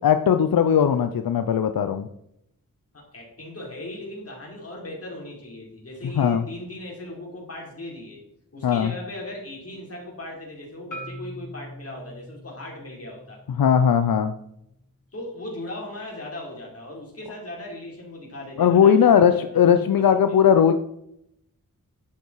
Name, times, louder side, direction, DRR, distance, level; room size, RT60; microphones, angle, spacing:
voice 1, 0.0-2.1 6.2-6.4 8.6-8.9 13.6-14.3 18.6-20.7, left 8 dB, 85° left, 9 dB, 0.7 m, -18 dB
voice 2, 2.9-8.2 8.5-13.4 15.1-19.6 20.0-20.1, left 1 dB, 45° left, -2 dB, 5.0 m, -38 dB
Marimba xylophone, 10.9-15.1, equal, 65° left, 2.9 m, -43 dB
11.5 x 8.3 x 4.7 m, 0.77 s
wide cardioid pair, 95°, 34 cm